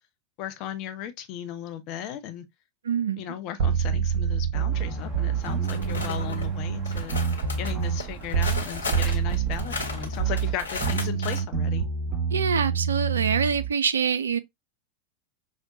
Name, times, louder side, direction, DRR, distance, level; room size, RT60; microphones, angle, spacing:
voice 1, 0.4-2.4 3.2-7.2 7.6-11.8, left 11 dB, 40° left, 0.6 m, -36 dB
voice 2, 2.8-3.2 12.3-14.4, right 6 dB, 70° right, 0.3 m, -25 dB
sound 1, 3.6-8.7 8.9-13.7, right 7 dB, 45° right, 1.1 m, -27 dB
sound 2, 4.7-11.0, right 9 dB, 20° right, 1.3 m, -40 dB
sound 3, 5.4-6.5 6.9-11.4, left 3 dB, 75° left, 1.1 m, -35 dB
5.7 x 2.1 x 2.6 m
figure-of-eight pair, 90°, 0 cm